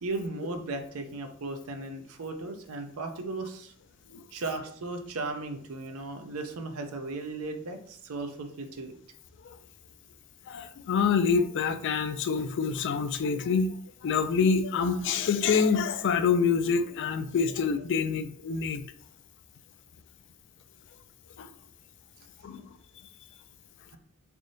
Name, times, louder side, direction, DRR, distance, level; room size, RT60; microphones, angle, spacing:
voice 1, 0.0-3.7 4.3-8.9, right 3 dB, 70° right, 7 dB, 0.5 m, -36 dB
voice 2, 10.5-13.7 14.0-18.8 21.4-21.5 22.4-22.6, left 5 dB, 55° left, 10 dB, 0.4 m, -26 dB
3.6 x 3.4 x 2.6 m, 0.63 s
head